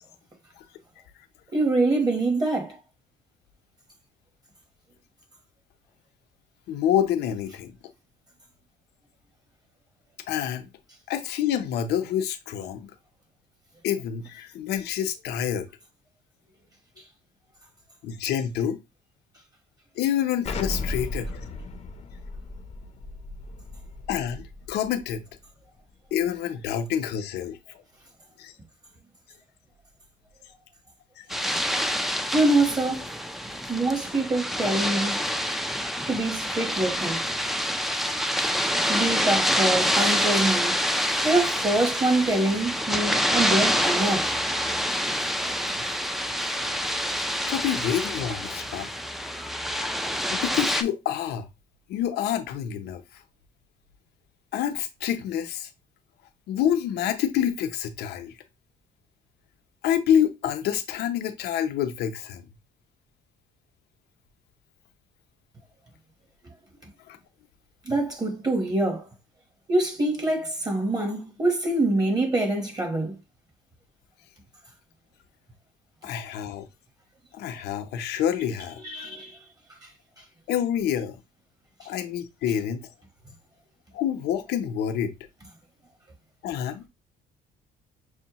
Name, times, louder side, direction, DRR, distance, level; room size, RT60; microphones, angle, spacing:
voice 1, 1.5-2.8 31.5-31.6 32.3-33.2 33.7-35.2 36.1-37.2 38.9-40.8 41.2-44.3 46.4-46.5 67.9-69.0 69.7-73.2 78.8-79.4, right 2 dB, 25° right, 1.1 m, -25 dB
voice 2, 6.7-7.7 10.3-10.7 11.1-12.9 13.8-15.7 18.0-18.8 20.0-21.3 24.1-25.2 26.1-27.8 28.4-28.5 31.2-31.3 47.5-48.9 50.3-51.5 51.9-53.2 54.5-55.7 56.5-58.3 59.8-62.5 67.1-67.2 76.0-76.7 77.3-79.1 80.5-81.2 81.9-82.9 83.9-85.1 86.4-86.9, left 9 dB, 75° left, 0.7 m, -27 dB
Explosion, 20.4-25.1, left 2 dB, 40° left, 0.6 m, -35 dB
sound 1, 31.3-50.8, equal, ahead, 0.4 m, -27 dB
6.3 x 2.1 x 2.9 m
cardioid pair, 110°, 17 cm